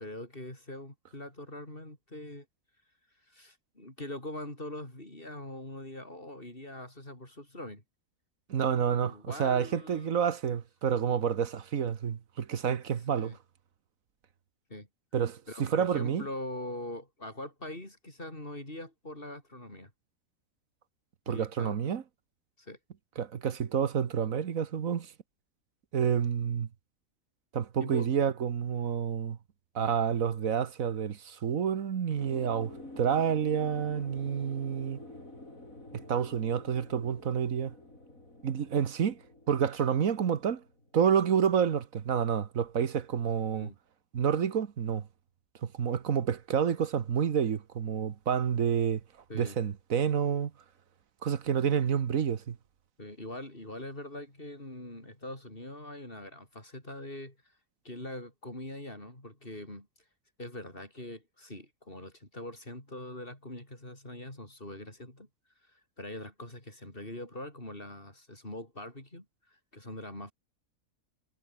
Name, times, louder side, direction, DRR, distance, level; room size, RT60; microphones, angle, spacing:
voice 1, 0.0-2.5 3.3-7.8 9.0-10.2 13.1-13.4 14.7-14.9 15.5-19.9 21.3-21.8 22.6-22.8 27.8-28.1 43.5-43.8 49.3-49.6 53.0-57.4 57.8-59.9 60.4-65.3 65.7-70.3, left 1 dB, 40° left, 6.7 m, -43 dB
voice 2, 8.5-13.4 15.1-16.3 21.3-22.0 23.2-25.1 25.9-26.7 27.5-29.4 29.7-35.0 36.1-37.7 38.4-39.2 39.5-40.6 40.9-43.7 44.1-45.0 45.6-49.0 49.3-50.5 51.2-52.6, right 7 dB, 80° right, 1.6 m, -29 dB
sound 1, 32.2-41.4 41.7-41.8, left 1 dB, 80° left, 8.3 m, -49 dB
omnidirectional pair, 1.4 m